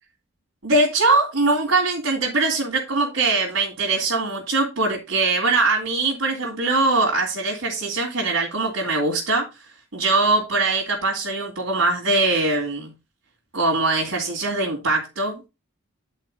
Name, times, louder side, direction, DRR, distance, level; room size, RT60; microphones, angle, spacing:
voice 1, 0.6-9.4 9.9-12.9 13.5-15.5, right 3 dB, 60° right, -1 dB, 2.6 m, -22 dB
10.5 x 4.3 x 5.3 m, 0.26 s
head